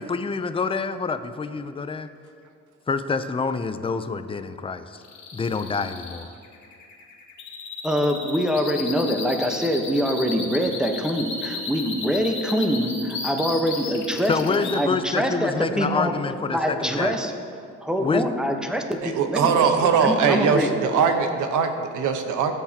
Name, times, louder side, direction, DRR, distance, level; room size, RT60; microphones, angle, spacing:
voice 1, 0.0-2.1 2.9-5.0 5.3-6.3 14.3-17.1 18.0-18.3, left 4 dB, 20° left, 10 dB, 0.5 m, -27 dB
sound 1, 5.0-14.8, left 4 dB, 70° left, 2.1 m, -34 dB
voice 2, 7.8-16.1 16.5-17.3 17.8-20.8, equal, ahead, 4 dB, 1.0 m, -24 dB
voice 3, 19.0-22.5, right 6 dB, 80° right, 6 dB, 1.1 m, -21 dB
16.0 x 8.1 x 2.9 m, 2.4 s
cardioid pair, 90°, 30 cm